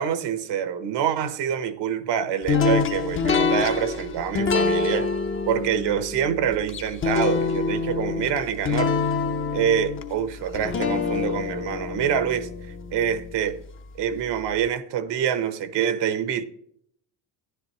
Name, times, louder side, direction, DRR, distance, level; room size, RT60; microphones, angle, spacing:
voice 1, 0.0-5.1 5.5-8.9 9.5-12.5 12.9-13.6 14.0-16.4, right 8 dB, 70° right, 1.0 m, -26 dB
sound 1, 2.5-13.5, left 4 dB, 30° left, 0.7 m, -26 dB
11.0 x 10.5 x 3.0 m
cardioid pair, 135°, 44 cm